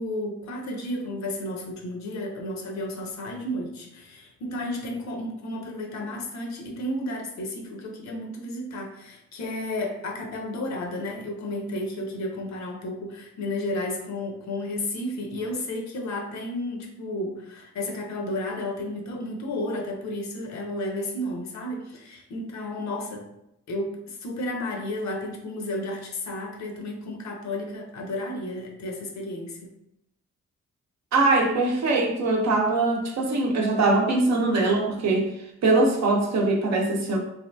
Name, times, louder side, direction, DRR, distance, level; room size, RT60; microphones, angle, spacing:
voice 1, 0.0-23.3 23.7-29.7, left 1 dB, 70° left, 1 dB, 0.6 m, -32 dB
voice 2, 31.1-35.3 35.6-37.2, right 2 dB, 65° right, 0 dB, 0.7 m, -22 dB
2.8 x 2.4 x 2.2 m, 0.83 s
cardioid pair, 65°, 29 cm